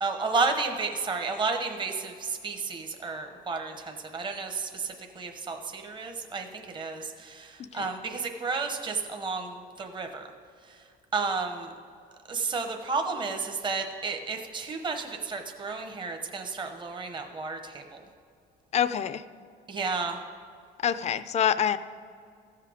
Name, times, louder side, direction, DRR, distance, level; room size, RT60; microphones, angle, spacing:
voice 1, 0.0-10.3 11.1-11.7 12.3-18.0 19.7-20.2, right 4 dB, 30° right, 4 dB, 0.9 m, -32 dB
voice 2, 18.7-19.2 20.8-21.8, left 9 dB, 40° left, 13 dB, 0.4 m, -26 dB
14.5 x 5.8 x 5.0 m, 2.3 s
cardioid pair, 110°, 17 cm